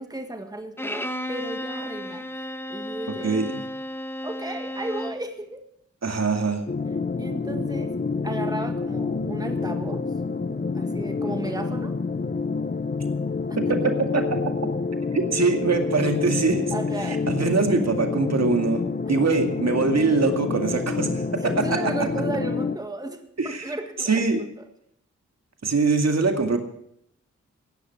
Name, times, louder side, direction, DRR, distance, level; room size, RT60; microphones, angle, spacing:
voice 1, 0.0-2.2 2.7-3.4 4.2-5.6 7.1-7.9 8.2-10.0 10.7-11.9 13.7-13.8 16.7-17.2 21.4-24.2 24.6-24.7, right 2 dB, 15° right, 6 dB, 1.7 m, -34 dB
Bowed string instrument, 0.8-5.3, left 1 dB, 10° left, 1.3 m, -33 dB
voice 2, 3.2-3.6 6.0-6.6 13.6-14.4 15.1-16.6 17.0-21.9 23.4-23.7 24.0-24.4 25.6-26.6, right 4 dB, 60° right, 5 dB, 2.2 m, -23 dB
sound 1, 6.7-22.8, left 4 dB, 30° left, 0.9 m, -28 dB
16.5 x 10.5 x 6.0 m, 0.73 s
cardioid pair, 60°, 30 cm